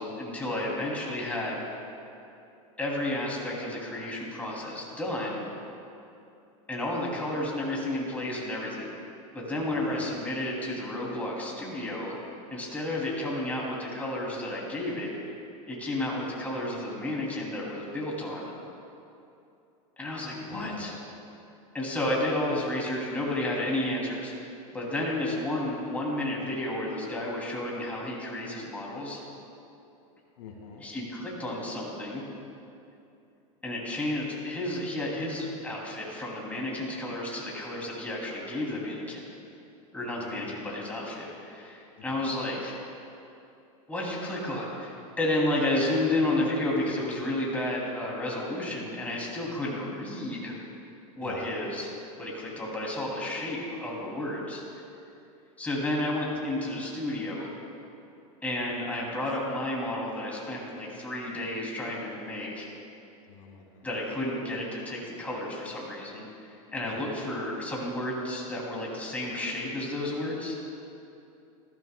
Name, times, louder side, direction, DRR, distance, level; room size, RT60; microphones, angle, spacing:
voice 1, 0.0-1.6 2.8-5.5 6.7-8.8 9.3-12.2 12.5-15.1 15.7-18.4 20.0-20.9 21.7-24.3 24.7-29.2 30.8-32.2 33.6-39.2 39.9-42.7 43.9-50.6 51.2-51.9 52.2-54.6 55.6-57.5 58.4-62.7 63.8-70.6, left 1 dB, 10° left, -4 dB, 2.6 m, -32 dB
voice 2, 9.7-10.0 20.5-20.9 30.4-30.8 40.2-40.5 42.1-42.2 51.2-51.4 63.3-63.8 66.9-67.0, left 6 dB, 70° left, 0 dB, 2.1 m, -44 dB
19.5 x 14.0 x 2.2 m, 2.7 s
supercardioid pair, 140°, 18 cm